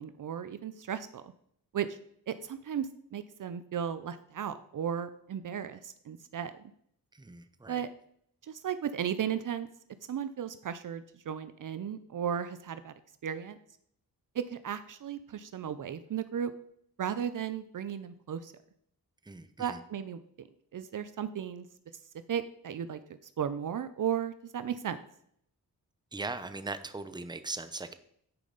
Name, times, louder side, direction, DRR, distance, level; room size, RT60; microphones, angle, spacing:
voice 1, 0.0-1.3 1.7-2.0 2.3-6.7 7.7-7.9 8.4-9.7 10.1-12.9 13.2-13.6 14.3-16.5 17.0-18.5 19.6-20.5 20.7-21.7 22.3-23.0 23.4-25.0, right 8 dB, 60° right, 12 dB, 0.5 m, -35 dB
voice 2, 7.1-7.8 19.2-19.8 26.1-27.9, right 3 dB, 10° right, 11 dB, 0.7 m, -39 dB
9.8 x 5.3 x 3.9 m, 0.67 s
cardioid pair, 70°, 37 cm